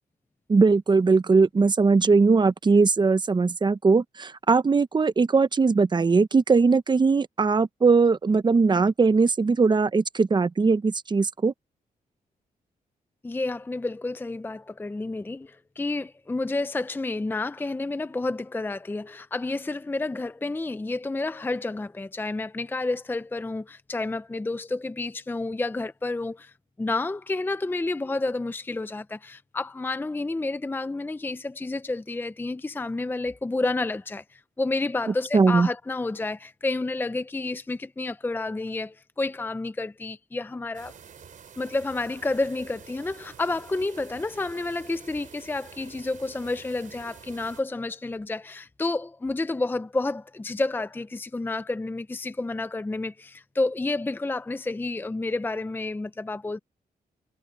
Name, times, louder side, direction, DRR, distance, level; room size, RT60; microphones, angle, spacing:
voice 1, 0.5-11.5 35.3-35.7, right 4 dB, 30° right, 0.8 m, -20 dB
voice 2, 13.2-40.9 41.6-56.6, left 2 dB, 15° left, 0.6 m, -30 dB
sound 1, 40.7-47.6, right 7 dB, 60° right, 4.1 m, -48 dB
cardioid pair, 105°, 15 cm